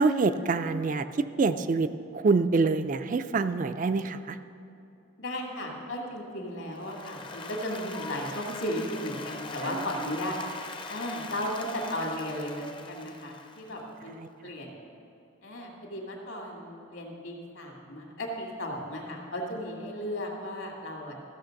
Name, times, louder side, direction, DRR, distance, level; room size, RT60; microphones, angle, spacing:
voice 1, 0.0-4.4 9.6-9.9 14.2-14.3, right 4 dB, 40° right, 10 dB, 0.3 m, -26 dB
voice 2, 5.2-10.4 10.9-14.2 14.4-14.8 15.4-21.2, equal, 70° left, 0 dB, 2.1 m, -35 dB
Applause, 6.7-13.9, left 3 dB, 25° left, 0.5 m, -42 dB
14.5 x 6.6 x 6.4 m, 2.6 s
head